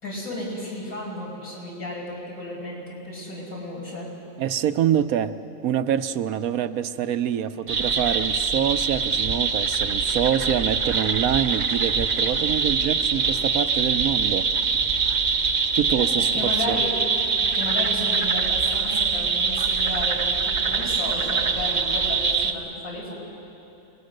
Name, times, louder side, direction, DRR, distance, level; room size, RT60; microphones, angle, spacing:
voice 1, 0.0-4.1 16.2-16.9 17.4-23.1, left 1 dB, 70° left, -3 dB, 6.1 m, -33 dB
voice 2, 4.4-5.4 5.6-14.5 15.7-16.8, right 10 dB, 75° right, 11 dB, 1.1 m, -25 dB
sound 1, 7.7-22.5, right 5 dB, 40° right, 0.7 m, -24 dB
28.0 x 20.5 x 6.5 m, 2.9 s
omnidirectional pair, 1.5 m